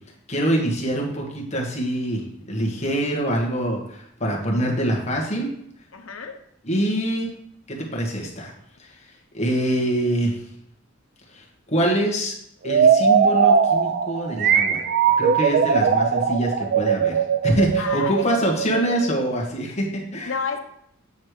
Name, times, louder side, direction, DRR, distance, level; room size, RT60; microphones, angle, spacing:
voice 1, 0.3-5.5 6.6-7.3 7.7-8.5 8.8-9.0 9.3-10.4 11.3-12.3 12.6-14.9 15.2-20.3, right 1 dB, 35° left, -1 dB, 1.4 m, -25 dB
voice 2, 5.9-6.4 17.8-18.3 20.2-20.6, left 5 dB, 80° left, 5 dB, 0.9 m, -29 dB
sound 1, 12.6-19.4, right 6 dB, 50° right, 0.4 m, -20 dB
8.2 x 3.2 x 4.7 m, 0.72 s
head